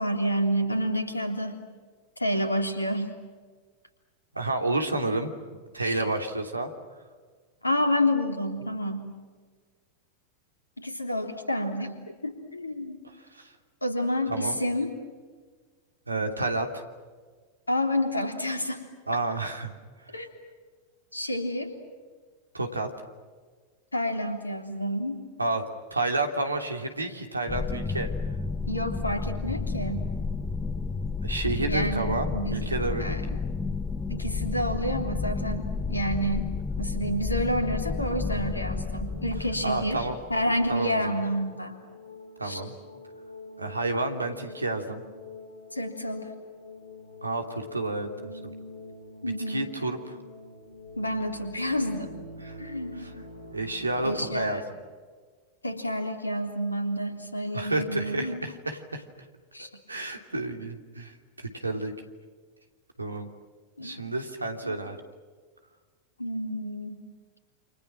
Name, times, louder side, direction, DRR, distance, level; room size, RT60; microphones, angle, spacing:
voice 1, 0.0-1.6 2.2-3.2 5.8-6.1 7.6-9.1 10.8-12.0 12.2-13.0 13.8-14.9 17.7-18.8 20.1-20.3 21.1-21.7 23.9-25.2 28.7-30.1 31.7-32.7 33.0-33.3 34.1-36.5 36.8-41.8 42.4-42.6 45.7-46.3 49.2-49.7 51.0-52.1 52.6-53.2 54.0-54.6 55.6-58.4 59.5-59.8 63.8-64.0 64.6-64.8 66.2-67.0, equal, 80° left, 5 dB, 3.5 m, -29 dB
voice 2, 4.3-5.3 5.7-6.7 13.3-13.5 14.3-14.6 16.1-16.8 19.1-19.7 22.5-22.9 25.4-25.6 25.9-28.1 31.2-33.2 39.6-40.2 40.7-41.2 42.4-42.7 43.6-45.0 47.2-48.1 49.2-50.1 52.4-52.6 53.0-53.1 53.5-54.6 57.5-59.0 59.9-61.9 63.0-63.3 63.8-65.0, right 2 dB, 80° right, 4 dB, 3.1 m, -30 dB
sound 1, 27.5-40.8, left 4 dB, 15° left, 1.2 m, -31 dB
sound 2, 38.7-54.5, left 2 dB, 65° left, 5.0 m, -46 dB
29.5 x 28.0 x 6.2 m, 1.5 s
figure-of-eight pair, 90°, 0 cm